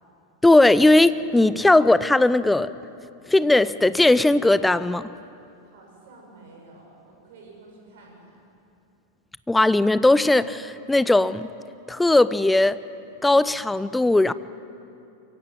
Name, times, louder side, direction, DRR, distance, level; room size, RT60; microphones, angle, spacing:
voice 1, 0.4-2.7 3.3-5.1 9.5-11.5 11.9-12.8 13.2-14.3, left 2 dB, 5° left, 16 dB, 0.5 m, -18 dB
voice 2, 5.6-8.4, right 2 dB, 55° right, 0 dB, 6.6 m, -49 dB
23.0 x 15.5 x 9.4 m, 2.6 s
figure-of-eight pair, 90°, 0 cm